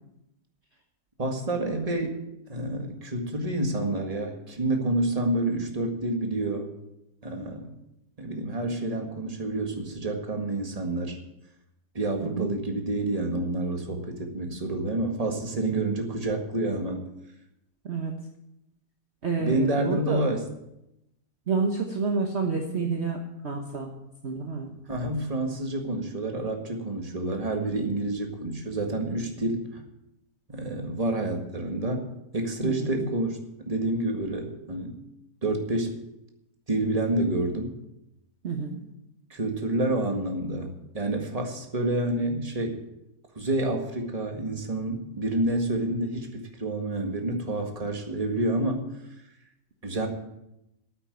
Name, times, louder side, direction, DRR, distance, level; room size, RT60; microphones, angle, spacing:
voice 1, 1.2-2.2 2.5-6.7 7.2-7.7 8.2-11.2 12.0-17.1 19.4-20.5 24.9-29.8 30.5-32.1 32.3-33.4 33.7-35.0 35.4-35.9 36.7-37.7 39.3-42.8 43.4-48.9 49.8-50.1, right 2 dB, 25° right, 3 dB, 1.8 m, -28 dB
voice 2, 19.2-20.2 21.5-23.9 24.2-24.7 32.6-33.0 38.4-38.8, right 4 dB, 45° right, 2 dB, 1.4 m, -29 dB
9.2 x 8.9 x 9.2 m, 0.86 s
omnidirectional pair, 1.7 m